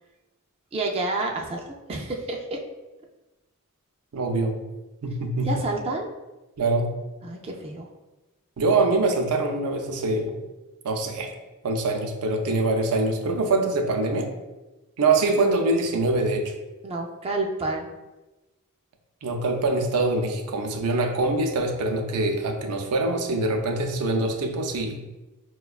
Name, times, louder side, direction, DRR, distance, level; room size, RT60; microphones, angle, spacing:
voice 1, 0.7-2.6 5.4-6.1 7.2-7.9 16.8-17.9, right 2 dB, 25° right, 1 dB, 0.3 m, -29 dB
voice 2, 4.1-4.6 5.0-5.5 6.6-6.9 8.6-10.3 10.8-11.3 11.6-14.3 15.0-16.5 19.2-25.0, right 2 dB, 90° right, 4 dB, 0.5 m, -24 dB
4.8 x 2.2 x 2.3 m, 1.1 s
head